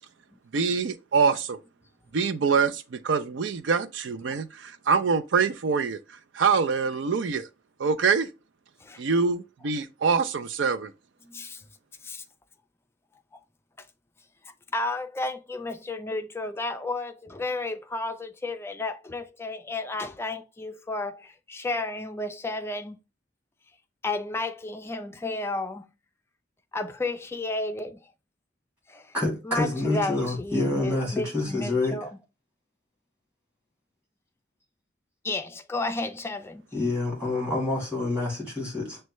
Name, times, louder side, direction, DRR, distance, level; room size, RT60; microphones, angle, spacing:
voice 1, 0.5-1.6 2.1-6.0 6.3-7.5 7.8-8.3 9.0-10.9, right 5 dB, 75° right, 0.4 m, -25 dB
voice 2, 11.2-11.6 12.0-12.2 13.3-13.4 13.8-13.9 14.4-23.0 24.0-25.9 26.7-28.0 28.9-29.2 29.4-32.2 35.2-36.6, left 2 dB, 15° left, 0.4 m, -32 dB
voice 3, 29.1-31.9 36.7-39.0, left 2 dB, 10° right, 2.2 m, -27 dB
6.3 x 2.2 x 3.0 m
head